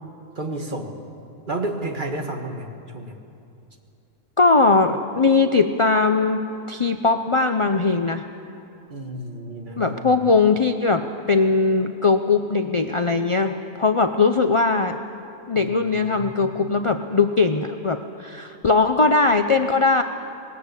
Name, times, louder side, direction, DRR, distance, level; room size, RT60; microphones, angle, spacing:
voice 1, 0.4-0.9 1.5-2.7 2.9-3.1 8.9-10.1 15.5-16.7, right 2 dB, 35° right, 3 dB, 1.8 m, -31 dB
voice 2, 4.4-6.4 6.7-8.2 9.8-15.0 15.5-20.0, left 4 dB, 50° left, 6 dB, 0.3 m, -20 dB
20.5 x 19.5 x 8.3 m, 2.7 s
omnidirectional pair, 1.6 m